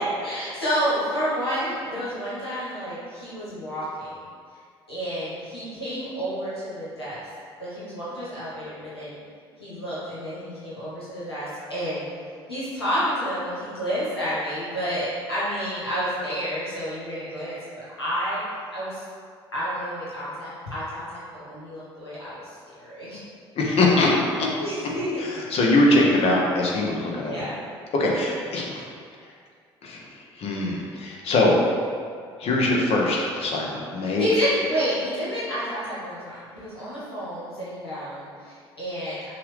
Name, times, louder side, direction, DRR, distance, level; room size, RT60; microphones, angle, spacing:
voice 1, 0.0-4.2 4.9-7.2 7.6-9.2 9.6-12.0 12.5-17.6 18.0-18.4 18.7-19.0 19.5-22.3 22.7-23.2 24.6-25.1 27.2-27.6 34.0-39.2, equal, 90° left, -11 dB, 1.2 m, -30 dB
voice 2, 23.6-24.5 25.2-27.5 27.9-28.9 29.8-30.0 30.4-31.6 32.4-34.2, left 2 dB, 50° left, -2 dB, 0.9 m, -22 dB
5.8 x 2.5 x 3.3 m, 2.1 s
figure-of-eight pair, 50°, 13 cm